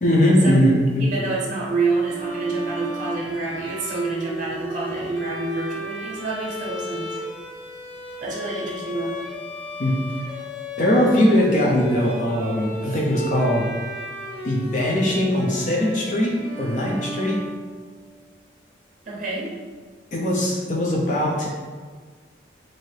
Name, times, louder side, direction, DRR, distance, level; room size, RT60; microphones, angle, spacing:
voice 1, 0.0-1.1 9.8-9.9 10.8-13.7 14.4-17.4 20.1-21.5, equal, 40° left, -3 dB, 0.5 m, -20 dB
voice 2, 1.0-7.1 8.2-9.2 12.8-13.0 19.1-19.5, right 3 dB, 45° right, -4 dB, 0.6 m, -27 dB
Bowed string instrument, 2.0-18.1, equal, 75° left, 1.0 m, -35 dB
2.7 x 2.5 x 3.2 m, 1.5 s
head